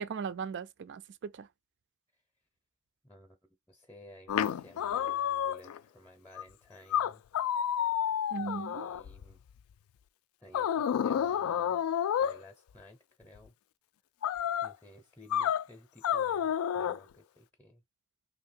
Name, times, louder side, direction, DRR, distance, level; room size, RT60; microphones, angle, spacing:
voice 1, 0.0-1.5 8.3-8.9, right 6 dB, 55° right, 0.4 m, -38 dB
voice 2, 3.0-7.2 8.4-9.4 10.4-11.8 12.2-13.5 14.6-17.8, left 1 dB, 10° left, 0.6 m, -55 dB
sound 1, 4.3-5.8 6.4-6.5 6.9-9.3 10.5-12.4 14.2-14.7 15.3-15.6 16.0-17.0, left 9 dB, 75° left, 0.3 m, -30 dB
2.9 x 2.8 x 4.3 m
head